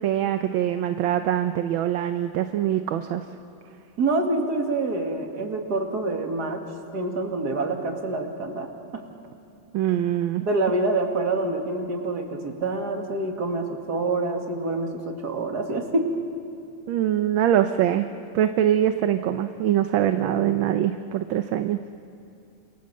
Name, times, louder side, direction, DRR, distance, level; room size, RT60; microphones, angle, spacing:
voice 1, 0.0-3.2 9.7-10.4 16.9-18.1 18.3-21.8, right 11 dB, 75° right, 8 dB, 1.5 m, -23 dB
voice 2, 4.0-6.6 6.9-9.0 10.4-16.1, right 2 dB, 50° right, 2 dB, 2.8 m, -26 dB
28.0 x 27.5 x 7.6 m, 2.5 s
omnidirectional pair, 2.3 m